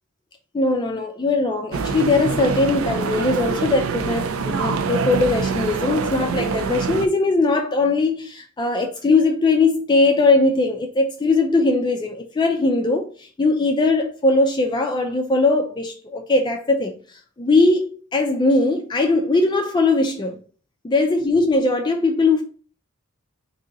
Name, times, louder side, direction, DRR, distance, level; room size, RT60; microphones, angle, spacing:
voice 1, 0.5-20.4 20.8-22.4, left 3 dB, 20° left, 0.3 m, -20 dB
sound 1, 1.7-7.1, right 5 dB, 65° right, 0.4 m, -25 dB
3.8 x 2.7 x 3.9 m
head